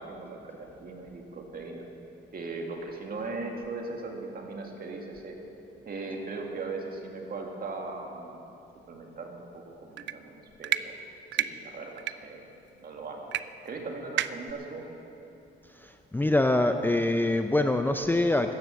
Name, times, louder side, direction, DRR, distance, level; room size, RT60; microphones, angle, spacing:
voice 1, 0.0-1.8 2.3-5.4 5.9-8.4 8.9-11.0 11.3-12.5 12.8-13.3 13.6-14.8, right 3 dB, 50° right, 1 dB, 2.2 m, -39 dB
sound 1, 10.0-10.2 10.6-10.8 11.3-11.5 12.0-12.1 13.3-13.4 13.7-13.8 14.2-14.5, right 12 dB, 65° right, 0.4 m, -28 dB
voice 2, 15.8-18.6, left 2 dB, 10° left, 7 dB, 0.5 m, -25 dB
14.0 x 9.6 x 6.5 m, 2.9 s
cardioid pair, 90°, 20 cm